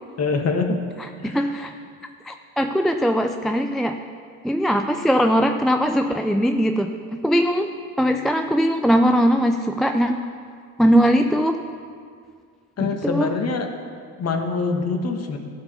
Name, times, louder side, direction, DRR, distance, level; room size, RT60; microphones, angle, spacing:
voice 1, 0.2-0.8 1.2-1.5 12.8-13.7 14.2-15.4, left 4 dB, 35° left, 5 dB, 1.4 m, -24 dB
voice 2, 1.2-1.7 2.2-4.0 4.4-7.7 8.0-10.2 10.8-11.6 12.8-13.3, equal, ahead, 6 dB, 0.3 m, -20 dB
11.0 x 4.9 x 6.9 m, 2.1 s
hypercardioid pair, 65°, 41 cm